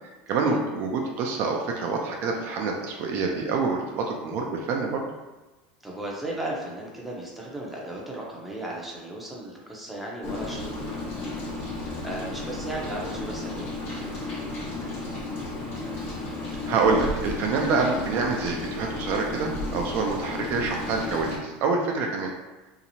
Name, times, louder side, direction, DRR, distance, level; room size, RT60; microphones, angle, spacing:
voice 1, 0.0-5.0 16.7-22.3, right 4 dB, 55° right, 1 dB, 0.4 m, -26 dB
voice 2, 5.8-11.4 12.0-13.7, right 1 dB, 5° right, -4 dB, 0.6 m, -36 dB
Rain, 10.2-21.4, left 2 dB, 55° left, 1.0 m, -33 dB
2.8 x 2.0 x 2.7 m, 1.1 s
supercardioid pair, 110°, 5 cm